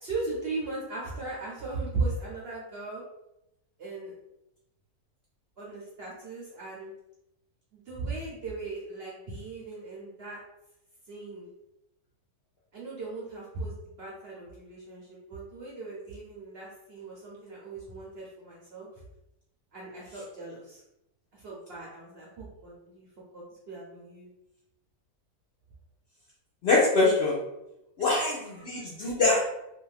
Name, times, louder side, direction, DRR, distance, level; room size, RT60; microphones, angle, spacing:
voice 1, 0.0-3.0 3.8-4.1 5.6-6.9 7.7-10.4 11.1-11.5 12.7-18.9 19.7-20.8 21.4-23.1 23.3-24.3 28.0-28.6, right 3 dB, 60° right, -4 dB, 0.7 m, -38 dB
voice 2, 26.6-27.4 28.0-29.4, left 3 dB, 65° left, -5 dB, 0.6 m, -24 dB
2.6 x 2.4 x 3.1 m, 0.89 s
omnidirectional pair, 1.6 m